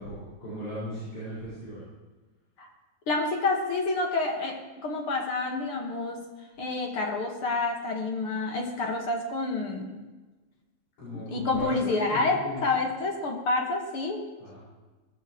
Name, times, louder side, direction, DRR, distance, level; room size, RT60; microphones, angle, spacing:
voice 1, 0.0-1.8 11.0-12.8 14.4-14.6, left 1 dB, 85° left, -11 dB, 7.4 m, -38 dB
voice 2, 3.1-6.2 6.6-10.0 11.1-14.3, left 3 dB, 50° left, 1 dB, 2.4 m, -28 dB
19.0 x 14.5 x 3.2 m, 1.2 s
omnidirectional pair, 3.4 m